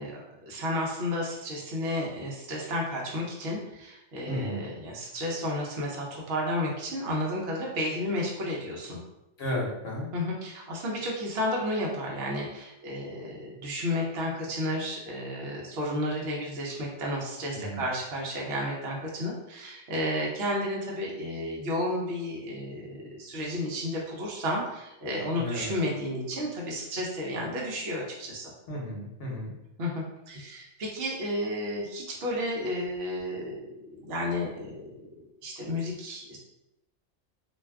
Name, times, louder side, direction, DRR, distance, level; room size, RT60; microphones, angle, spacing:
voice 1, 0.0-9.0 10.1-28.5 29.8-35.0 35.4-36.4, left 1 dB, 60° right, -3 dB, 0.9 m, -32 dB
voice 2, 4.3-4.6 9.4-10.1 17.5-17.8 25.3-25.7 28.7-29.5, equal, 55° left, -3 dB, 1.0 m, -33 dB
2.5 x 2.2 x 3.4 m, 0.90 s
omnidirectional pair, 1.3 m